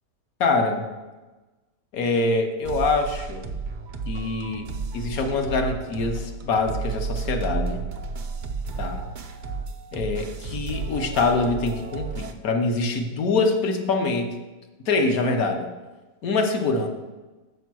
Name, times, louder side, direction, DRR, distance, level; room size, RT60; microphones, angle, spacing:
voice 1, 0.4-0.9 1.9-3.4 4.1-4.6 4.9-7.8 8.8-9.0 9.9-14.3 14.9-15.6 16.2-16.9, left 3 dB, 65° left, 5 dB, 1.4 m, -24 dB
sound 1, 2.6-12.3, right 4 dB, 85° right, 0.4 m, -32 dB
7.5 x 5.8 x 6.1 m, 1.2 s
omnidirectional pair, 1.7 m